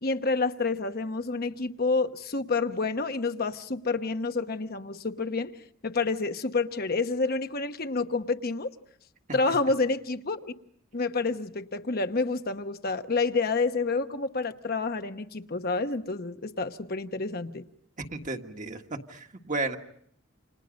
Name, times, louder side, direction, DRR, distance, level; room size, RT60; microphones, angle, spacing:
voice 1, 0.0-5.5 5.8-8.7 9.3-10.5 10.9-17.6, left 3 dB, 50° left, 8 dB, 1.1 m, -29 dB
voice 2, 18.0-19.8, right 3 dB, 40° right, 4 dB, 1.7 m, -33 dB
29.5 x 27.5 x 5.2 m, 0.68 s
head